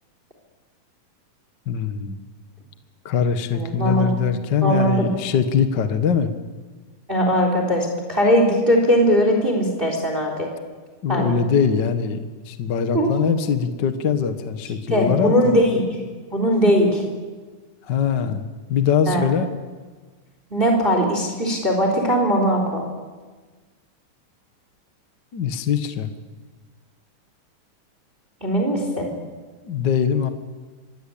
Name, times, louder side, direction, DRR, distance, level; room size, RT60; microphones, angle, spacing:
voice 1, 1.7-2.2 3.0-6.3 11.0-12.2 12.4-15.3 17.9-19.5 25.3-26.1 29.6-30.3, left 7 dB, 50° left, 8 dB, 1.4 m, -22 dB
voice 2, 3.5-4.1 4.6-5.1 7.1-10.5 11.1-11.3 12.9-13.1 14.9-15.9 16.3-17.0 19.1-19.2 20.5-22.8 28.4-29.1, equal, 15° right, 2 dB, 3.8 m, -19 dB
26.5 x 21.5 x 8.6 m, 1.4 s
omnidirectional pair, 3.7 m